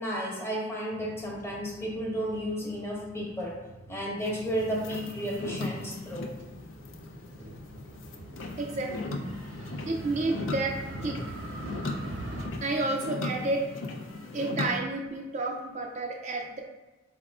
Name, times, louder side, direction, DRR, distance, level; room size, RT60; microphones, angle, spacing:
voice 1, 0.0-3.5 3.9-6.3, equal, 15° left, -3 dB, 0.8 m, -32 dB
Motorcycle, 0.9-12.5, right 2 dB, 80° right, 0.6 m, -44 dB
sound 1, 4.2-14.8, left 2 dB, 80° left, 0.4 m, -38 dB
voice 2, 8.6-9.2 9.9-10.8 11.0-11.2 12.6-13.7 14.3-16.6, right 2 dB, 35° right, 1 dB, 0.3 m, -30 dB
4.7 x 3.5 x 2.3 m, 1.1 s
head